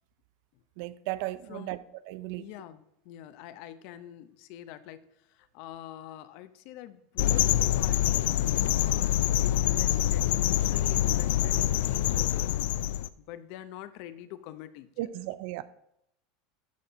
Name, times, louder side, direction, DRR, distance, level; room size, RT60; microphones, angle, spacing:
voice 1, 0.8-1.8 2.1-2.5 11.6-11.7 15.0-15.6, right 16 dB, 60° right, 0.5 m, -35 dB
voice 2, 2.4-12.5 13.2-15.1, left 12 dB, 50° left, 0.7 m, -45 dB
sound 1, 7.2-13.1, left 13 dB, 85° left, 0.3 m, -25 dB
12.5 x 4.3 x 5.1 m
supercardioid pair, 165°, 0 cm